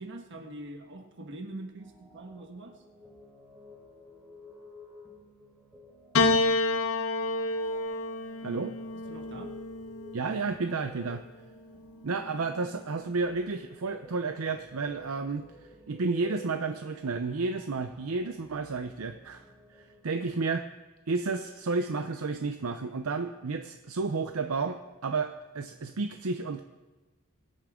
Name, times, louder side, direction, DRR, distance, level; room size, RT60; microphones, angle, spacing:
voice 1, 0.0-2.8 8.4-8.7 8.9-9.6, right 1 dB, 60° right, 4 dB, 1.6 m, -43 dB
sound 1, 1.8-20.3, equal, 5° right, 4.2 m, -53 dB
Piano, 6.1-10.6 11.7-12.4, left 2 dB, 75° left, 1.0 m, -29 dB
voice 2, 8.4-8.7 10.1-11.2 12.0-15.4 15.9-19.4 19.7-20.7 21.1-26.6, right 4 dB, 80° right, 7 dB, 0.6 m, -31 dB
22.0 x 8.6 x 3.7 m, 1.1 s
head